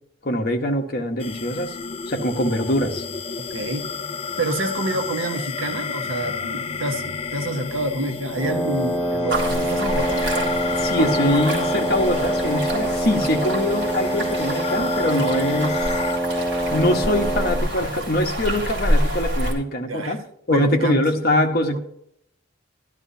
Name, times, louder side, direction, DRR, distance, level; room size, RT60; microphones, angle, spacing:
voice 1, 0.2-1.8 2.1-3.0 10.7-15.9 16.7-20.2 20.5-21.8, left 1 dB, 45° left, 1.2 m, -23 dB
sound 1, 1.2-16.2, left 4 dB, 30° left, 0.4 m, -31 dB
voice 2, 3.5-3.9 4.4-10.3 19.9-20.2 20.5-21.1 21.7-21.8, right 1 dB, 80° right, 1.3 m, -27 dB
Wind instrument woodwind instrument, 8.4-17.7, right 1 dB, 10° left, 1.2 m, -25 dB
sound 2, 9.3-19.5, equal, 55° right, 3.3 m, -28 dB
12.5 x 12.5 x 2.8 m
head